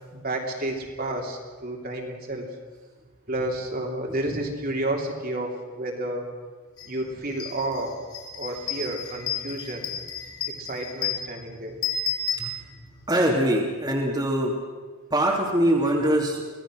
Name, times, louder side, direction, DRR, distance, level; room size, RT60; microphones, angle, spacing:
voice 1, 0.1-2.5 3.3-6.3 6.9-7.9 8.3-9.9 10.6-11.8, right 1 dB, 40° right, 1 dB, 3.1 m, -31 dB
sound 1, 6.8-6.9 7.2-13.1, left 5 dB, 80° left, 4.2 m, -32 dB
voice 2, 13.1-14.5 15.1-16.4, right 1 dB, 20° right, -2 dB, 2.6 m, -22 dB
25.5 x 18.0 x 6.3 m, 1.4 s
head